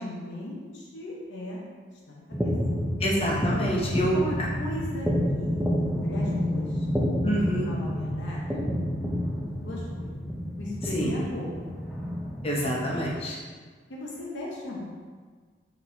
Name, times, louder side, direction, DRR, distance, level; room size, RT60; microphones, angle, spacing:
voice 1, 0.0-1.7 2.1-2.5 4.1-5.1 5.4-5.6 6.0-6.8 7.6-8.5 9.6-10.1 10.6-11.7 13.9-14.8, left 1 dB, 75° left, -4 dB, 0.7 m, -37 dB
sound 1, 2.3-13.2, equal, ahead, 0.4 m, -29 dB
voice 2, 3.0-4.2 7.2-7.7 10.9-11.1 12.4-13.4, equal, 30° left, -4 dB, 0.7 m, -27 dB
4.4 x 3.9 x 2.6 m, 1.5 s
head